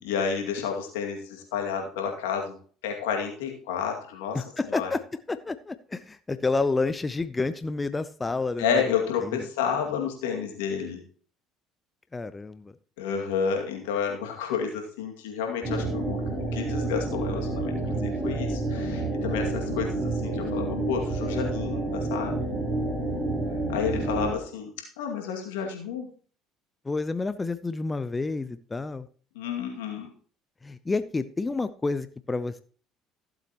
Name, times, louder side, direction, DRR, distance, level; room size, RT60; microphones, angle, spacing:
voice 1, 0.0-2.6 2.8-4.9 8.6-11.0 13.0-22.5 23.7-26.1 29.3-30.1, left 7 dB, 85° left, 2 dB, 2.2 m, -30 dB
voice 2, 4.3-5.0 5.3-8.8 9.2-9.4 12.1-12.7 19.8-20.0 23.9-24.4 26.8-29.1 30.6-32.6, left 3 dB, 20° left, 13 dB, 0.6 m, -30 dB
sound 1, 15.6-24.3, right 2 dB, 25° right, 4.4 m, -29 dB
15.0 x 7.8 x 3.0 m, 0.43 s
supercardioid pair, 80°, 0 cm